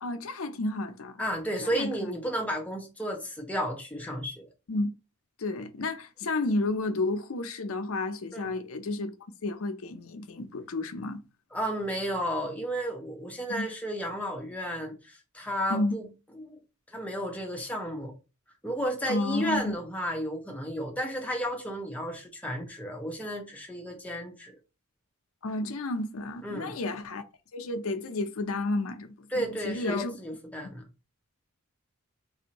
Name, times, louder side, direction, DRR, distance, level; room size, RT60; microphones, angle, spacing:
voice 1, 0.0-1.2 1.6-2.1 4.7-4.9 5.4-9.1 9.4-11.2 13.5-13.7 15.7-16.0 19.1-19.8 25.4-27.2 27.5-30.2, left 2 dB, 65° left, 0.6 m, -31 dB
voice 2, 1.2-4.5 8.3-8.5 11.5-16.1 16.4-16.6 16.9-18.1 18.6-24.5 26.4-26.8 29.3-30.8, equal, 5° left, 0.7 m, -33 dB
4.1 x 2.6 x 2.9 m
head